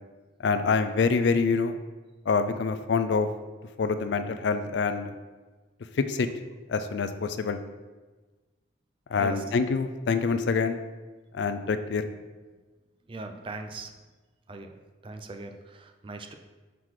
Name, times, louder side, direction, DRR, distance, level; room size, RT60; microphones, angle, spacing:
voice 1, 0.4-1.8 2.3-3.3 3.8-5.1 6.0-6.3 6.7-7.6 9.1-10.8 11.3-12.1, left 4 dB, 60° left, 10 dB, 0.4 m, -26 dB
voice 2, 13.1-13.9 14.5-16.3, right 3 dB, 25° right, 5 dB, 0.4 m, -40 dB
5.8 x 3.8 x 4.7 m, 1.3 s
head